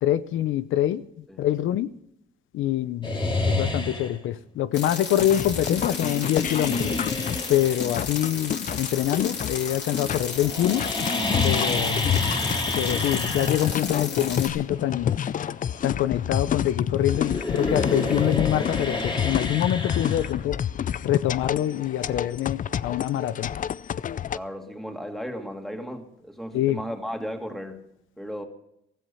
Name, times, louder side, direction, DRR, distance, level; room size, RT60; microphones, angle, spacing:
voice 1, 0.0-1.9 2.5-3.2 3.5-6.9 7.5-10.9 11.4-12.1 12.8-15.1 15.8-20.6 21.0-23.5 26.5-26.8, left 12 dB, 80° left, 14 dB, 0.7 m, -25 dB
sound 1, 3.0-4.3 5.5-9.8 10.1-16.7 17.0-20.8, left 2 dB, 25° left, 2.5 m, -30 dB
sound 2, 4.7-14.5, left 5 dB, 60° left, 3.5 m, -34 dB
sound 3, 5.2-24.4, left 9 dB, 40° left, 0.5 m, -29 dB
voice 2, 24.3-27.8 28.2-28.4, equal, ahead, 4 dB, 2.5 m, -35 dB
16.0 x 14.0 x 5.7 m, 0.78 s
cardioid pair, 90°, 20 cm